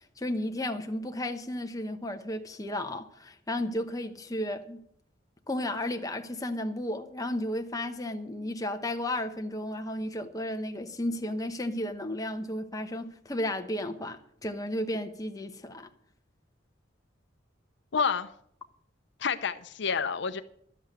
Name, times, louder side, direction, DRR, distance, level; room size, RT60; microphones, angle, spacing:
voice 1, 0.2-4.8 5.5-15.9, left 1 dB, 20° left, 1.0 m, -33 dB
voice 2, 17.9-18.3 19.2-20.4, left 6 dB, 65° left, 0.6 m, -28 dB
12.0 x 8.0 x 8.0 m
head